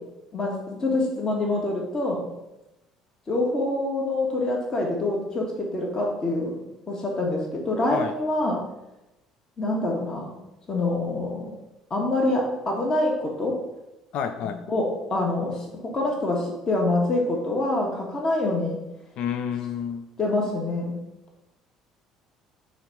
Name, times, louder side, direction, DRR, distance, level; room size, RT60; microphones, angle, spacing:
voice 1, 0.3-2.3 3.3-5.5 5.7-6.6 6.9-8.6 9.6-10.3 10.7-11.5 11.9-13.6 14.7-18.8 20.2-20.9, left 2 dB, 30° left, -1 dB, 1.3 m, -25 dB
voice 2, 14.1-14.6 19.2-20.1, left 8 dB, 50° left, 8 dB, 0.5 m, -29 dB
5.6 x 3.2 x 5.3 m, 0.95 s
figure-of-eight pair, 55°, 2 cm